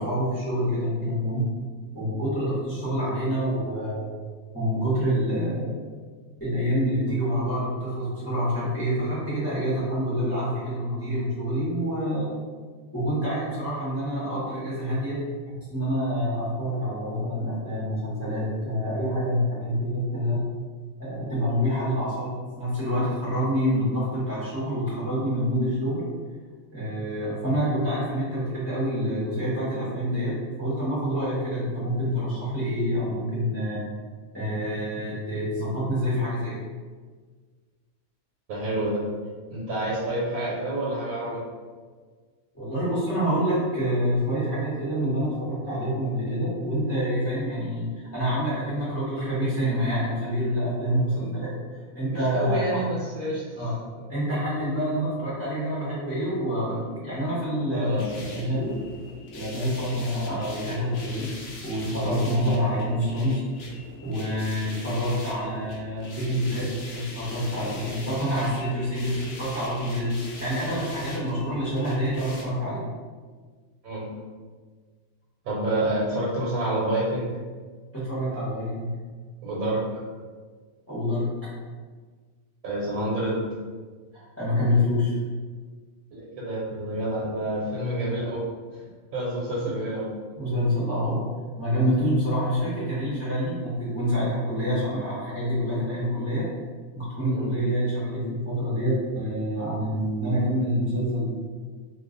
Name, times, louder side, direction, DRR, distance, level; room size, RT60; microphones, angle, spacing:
voice 1, 0.0-1.5 1.9-4.1 4.5-5.8 6.4-12.3 12.9-15.2 15.6-20.4 21.0-26.0 26.7-30.3 30.6-33.8 34.3-36.5 42.5-51.5 51.9-52.6 53.6-53.7 54.1-58.0 58.3-58.7 59.3-61.3 61.6-63.4 64.0-72.8 77.9-78.9 80.9-81.3 84.1-85.1 90.4-91.3 91.6-96.4 96.9-101.3, equal, 10° left, -10 dB, 0.9 m, -27 dB
voice 2, 38.5-39.0 39.5-41.4 51.1-51.4 52.0-53.7 57.7-58.5 62.3-62.4 73.8-74.1 75.4-77.4 79.4-80.0 82.6-83.4 86.1-88.4 88.7-88.8 89.1-90.1 97.3-97.5, right 1 dB, 80° right, -6 dB, 1.2 m, -28 dB
sound 1, 57.8-72.4, left 2 dB, 65° left, 0.8 m, -41 dB
2.4 x 2.4 x 3.8 m, 1.5 s
omnidirectional pair, 1.5 m